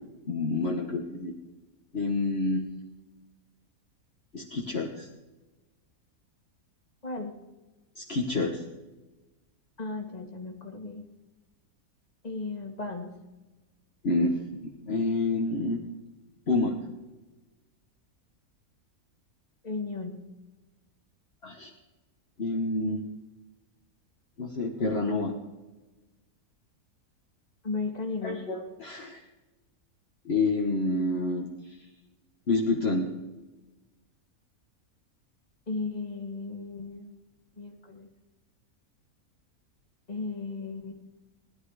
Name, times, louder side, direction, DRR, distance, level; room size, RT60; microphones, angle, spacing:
voice 1, 0.2-1.3 1.9-2.7 4.3-5.1 8.0-8.6 14.0-15.8 16.5-16.8 21.4-21.7 22.4-23.0 24.4-25.4 28.2-29.2 30.2-31.8 32.5-33.2, left 2 dB, 45° left, 0 dB, 1.6 m, -28 dB
voice 2, 7.0-7.3 9.8-11.0 12.2-13.1 19.6-20.2 27.6-28.4 35.7-37.2 37.6-38.1 40.1-40.9, left 3 dB, 25° left, 3 dB, 2.0 m, -35 dB
19.5 x 11.0 x 4.8 m, 1.1 s
omnidirectional pair, 1.5 m